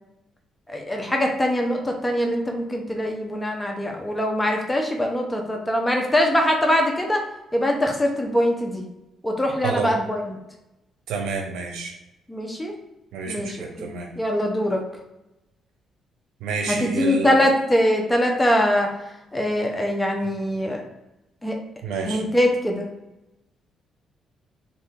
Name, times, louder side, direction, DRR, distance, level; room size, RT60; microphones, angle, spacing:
voice 1, 0.7-7.2 7.5-8.8 9.2-10.4 12.3-12.7 13.3-13.9 14.2-14.8 16.7-18.9 19.3-20.8 21.4-21.5 22.0-22.9, equal, 10° left, 2 dB, 0.7 m, -22 dB
voice 2, 9.6-10.0 11.1-11.9 13.1-14.1 16.4-17.4 21.8-22.2, right 4 dB, 85° right, 2 dB, 0.7 m, -29 dB
2.7 x 2.6 x 3.5 m, 0.95 s
cardioid pair, 90°, 0 cm